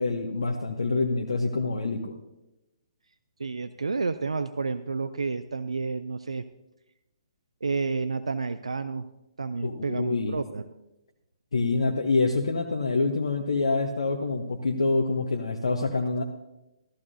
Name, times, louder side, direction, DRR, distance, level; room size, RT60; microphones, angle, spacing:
voice 1, 0.0-2.0 9.6-10.4 11.5-16.2, left 3 dB, 65° left, 2 dB, 0.9 m, -26 dB
voice 2, 3.4-6.4 7.6-9.1 9.4-10.7, right 4 dB, 75° right, 12 dB, 0.4 m, -30 dB
14.0 x 13.5 x 2.7 m, 0.94 s
figure-of-eight pair, 130°, 3 cm